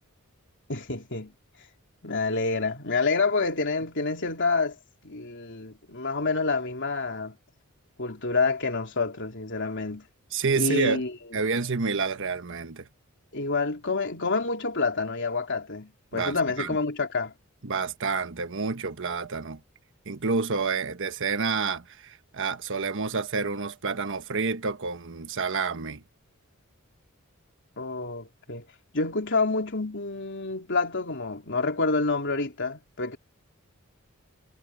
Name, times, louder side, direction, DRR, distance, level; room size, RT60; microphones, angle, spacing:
voice 1, 0.7-1.3 2.0-4.8 5.0-7.4 8.0-10.1 10.5-11.1 13.3-17.3 27.8-28.7 28.9-33.2, left 3 dB, 60° left, 3.6 m, -28 dB
voice 2, 10.3-11.0 11.3-12.9 16.1-16.8 17.6-19.6 20.1-26.0, right 4 dB, 60° right, 1.2 m, -29 dB
head